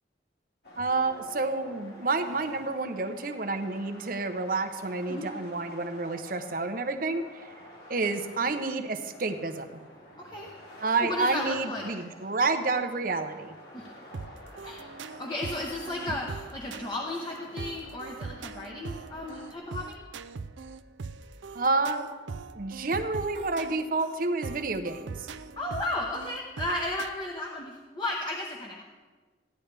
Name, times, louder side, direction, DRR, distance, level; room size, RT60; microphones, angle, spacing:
sound 1, 0.6-19.6, left 1 dB, 55° left, 2.7 m, -50 dB
voice 1, 0.8-7.4 7.9-9.8 10.8-13.5 21.5-22.1 22.5-25.1, right 3 dB, 50° right, 7 dB, 0.8 m, -29 dB
voice 2, 10.2-10.5 11.0-11.9 13.7-13.9 14.6-14.9 15.2-20.0 25.6-28.8, left 1 dB, 25° left, -1 dB, 1.0 m, -34 dB
sound 2, 14.1-27.1, right 4 dB, 85° right, 0.4 m, -41 dB
15.5 x 10.5 x 3.4 m, 1.3 s
head